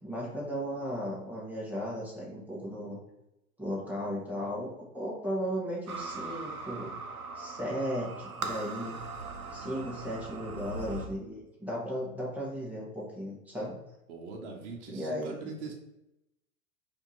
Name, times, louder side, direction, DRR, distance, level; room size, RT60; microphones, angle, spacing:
voice 1, 0.0-3.0 3.6-6.9 7.3-9.0 9.5-13.8 14.9-15.5, equal, 5° right, -6 dB, 1.3 m, -36 dB
sound 1, 5.9-11.1, right 3 dB, 85° right, 0.7 m, -40 dB
voice 2, 14.1-15.7, right 4 dB, 55° right, 0 dB, 1.1 m, -42 dB
4.4 x 2.9 x 3.9 m, 0.89 s
figure-of-eight pair, 95°, 43 cm